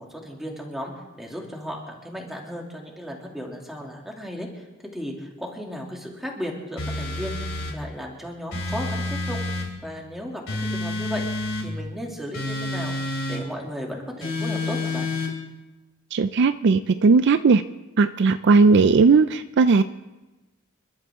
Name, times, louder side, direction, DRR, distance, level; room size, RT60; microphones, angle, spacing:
voice 1, 0.0-4.6 4.9-7.4 7.7-9.4 9.8-11.3 11.6-12.9 13.3-15.1, equal, ahead, -1 dB, 2.6 m, -35 dB
sound 1, 6.8-7.8 8.5-9.7 10.5-11.7 12.3-13.4 14.2-15.3, left 2 dB, 65° left, 3.4 m, -28 dB
voice 2, 16.1-17.6 18.0-19.8, right 4 dB, 55° right, 12 dB, 0.4 m, -17 dB
29.0 x 12.0 x 3.7 m, 1.1 s
head